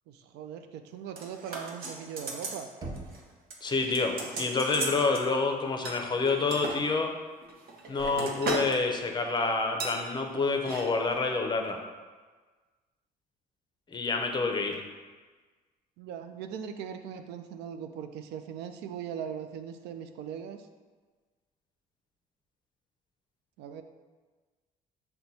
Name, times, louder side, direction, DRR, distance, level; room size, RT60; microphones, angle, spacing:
voice 1, 0.1-2.7 16.0-20.7 23.6-23.8, right 8 dB, 85° right, 7 dB, 0.4 m, -40 dB
sound 1, 1.2-2.6 2.9-3.2 3.5-5.2 5.8-6.8 7.4-8.8 9.1-9.3 9.8-10.0 10.5-10.8 11.1-11.2, right 3 dB, 65° right, 0.9 m, -36 dB
Knock, 2.8-3.7, right 2 dB, 25° right, 0.8 m, -41 dB
voice 2, 3.6-7.1 7.9-11.8 13.9-14.8, left 3 dB, 25° left, 4 dB, 0.5 m, -28 dB
5.9 x 2.2 x 4.0 m, 1.4 s
cardioid pair, 110°, 17 cm